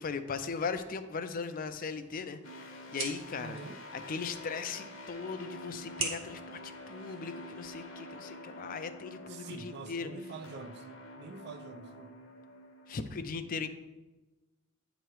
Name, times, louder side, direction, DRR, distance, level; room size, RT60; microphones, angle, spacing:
voice 1, 0.0-3.6 3.9-10.1 12.9-13.7, left 5 dB, 45° left, 10 dB, 0.4 m, -38 dB
sound 1, 1.7-7.7, right 4 dB, 80° right, 1.4 m, -44 dB
sound 2, 2.4-13.0, left 1 dB, 65° left, 1.0 m, -48 dB
voice 2, 3.4-3.8 9.3-12.1, right 3 dB, 55° right, 9 dB, 0.5 m, -46 dB
9.0 x 3.0 x 4.7 m, 1.1 s
head